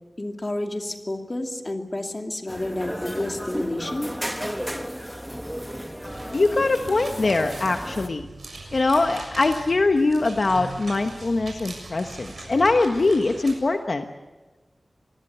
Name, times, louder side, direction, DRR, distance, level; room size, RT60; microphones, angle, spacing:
voice 1, 0.2-4.1, left 1 dB, 30° left, 4 dB, 2.5 m, -30 dB
sound 1, 2.5-8.1, equal, ahead, 1.2 m, -33 dB
sound 2, 6.1-13.5, right 3 dB, 75° right, 6.9 m, -40 dB
voice 2, 6.3-8.3 8.7-14.0, left 3 dB, 60° left, 6 dB, 1.1 m, -22 dB
26.5 x 19.5 x 8.0 m, 1.2 s
wide cardioid pair, 90°, 0 cm